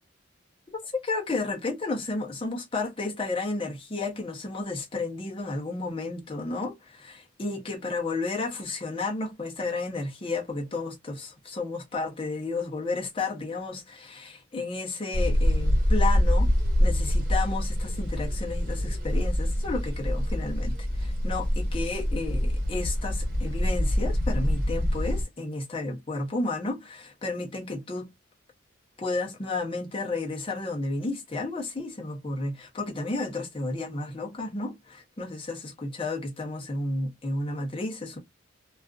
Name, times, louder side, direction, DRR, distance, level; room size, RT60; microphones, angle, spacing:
voice 1, 0.7-16.5 16.8-28.1 29.0-38.2, left 3 dB, 25° left, 0.6 m, -32 dB
sound 1, 15.1-25.2, equal, 50° right, 1.4 m, -25 dB
2.4 x 2.4 x 2.3 m
head